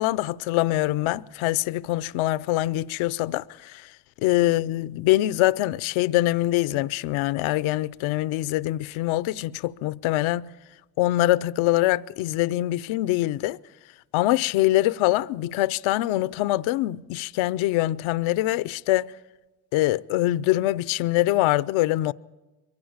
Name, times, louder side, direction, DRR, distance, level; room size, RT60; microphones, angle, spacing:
voice 1, 0.0-3.9 4.2-10.5 11.0-13.6 14.1-19.1 19.7-22.1, left 16 dB, 75° left, 0.6 m, -24 dB
23.0 x 15.5 x 8.8 m
supercardioid pair, 70°, 48 cm